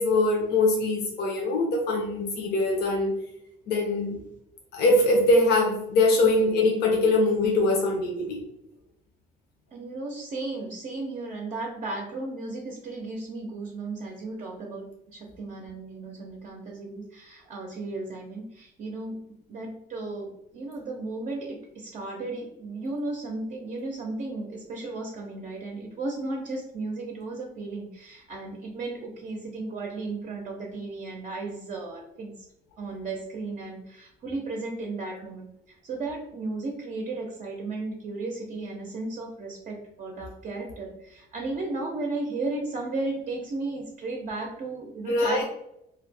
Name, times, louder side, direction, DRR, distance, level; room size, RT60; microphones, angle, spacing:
voice 1, 0.0-3.2 3.7-4.2 4.7-8.4 45.1-45.4, left 2 dB, 70° left, 0 dB, 0.6 m, -23 dB
voice 2, 9.7-32.4 32.8-45.4, right 3 dB, 45° right, 0 dB, 0.5 m, -35 dB
2.3 x 2.0 x 3.3 m, 0.82 s
cardioid pair, 110°, 17 cm